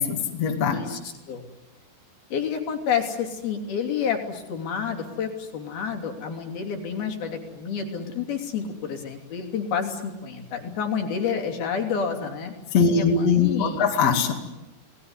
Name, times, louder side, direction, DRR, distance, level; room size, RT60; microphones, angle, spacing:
voice 1, 0.0-0.8 12.7-14.3, left 5 dB, 45° left, 2 dB, 3.1 m, -21 dB
voice 2, 0.7-1.4 2.3-13.9, left 7 dB, 65° left, 3 dB, 4.8 m, -29 dB
28.5 x 19.5 x 9.6 m, 0.97 s
omnidirectional pair, 4.7 m